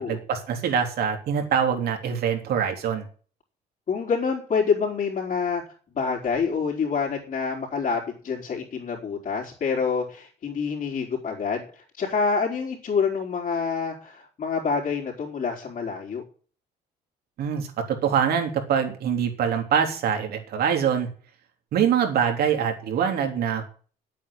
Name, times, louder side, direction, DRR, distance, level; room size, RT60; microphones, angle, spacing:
voice 1, 0.0-3.1 17.4-21.1 21.7-23.7, right 7 dB, 65° right, 4 dB, 3.5 m, -24 dB
voice 2, 3.9-5.6 5.9-16.2, left 5 dB, 45° left, -5 dB, 4.2 m, -27 dB
9.7 x 8.6 x 8.8 m, 0.42 s
cardioid pair, 110°, 17 cm